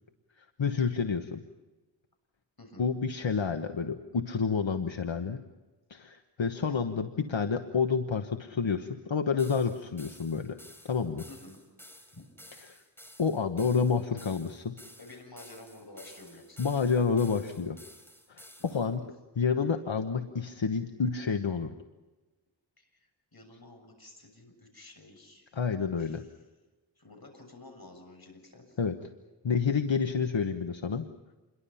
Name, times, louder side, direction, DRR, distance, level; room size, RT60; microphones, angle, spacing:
voice 1, 0.4-1.4 2.8-5.4 5.9-10.6 10.8-11.2 12.7-12.8 13.2-14.7 16.6-17.8 18.3-19.0 19.4-21.7 25.5-26.2 28.8-29.0 29.4-31.1, left 5 dB, 80° left, 7 dB, 1.3 m, -29 dB
sound 1, 9.4-18.9, equal, 5° left, 4.6 m, -53 dB
voice 2, 11.3-11.6 12.1-12.2 15.0-16.6 18.6-18.9 22.8-25.5 26.0-26.2 27.0-28.8, left 2 dB, 55° left, 4 dB, 7.0 m, -51 dB
28.0 x 23.0 x 5.7 m, 1.2 s
wide cardioid pair, 50°, 45 cm